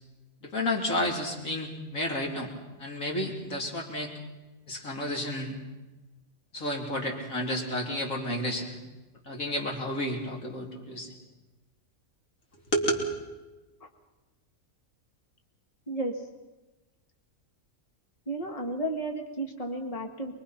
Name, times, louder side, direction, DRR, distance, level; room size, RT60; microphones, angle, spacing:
voice 1, 0.4-2.5 2.8-4.1 4.7-5.6 6.5-8.8 9.3-11.1 12.7-13.1, left 1 dB, 75° left, 0 dB, 3.7 m, -31 dB
voice 2, 18.3-20.3, right 1 dB, 25° left, 3 dB, 1.7 m, -33 dB
24.0 x 22.5 x 5.9 m, 1.1 s
omnidirectional pair, 1.4 m